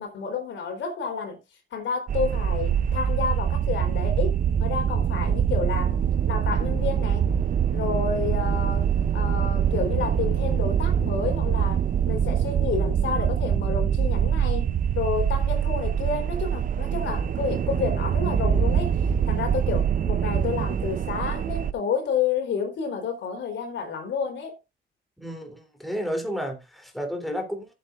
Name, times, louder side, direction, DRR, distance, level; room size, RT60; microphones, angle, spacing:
voice 1, 0.0-1.4 1.7-6.0 6.3-7.3 7.7-8.9 9.1-24.5, left 6 dB, 70° left, 3.9 m, -30 dB
sound 1, 2.1-21.7, right 8 dB, 45° right, 0.6 m, -24 dB
voice 2, 25.2-27.7, equal, ahead, 3.4 m, -31 dB
15.0 x 8.2 x 2.5 m
cardioid pair, 90°, 20 cm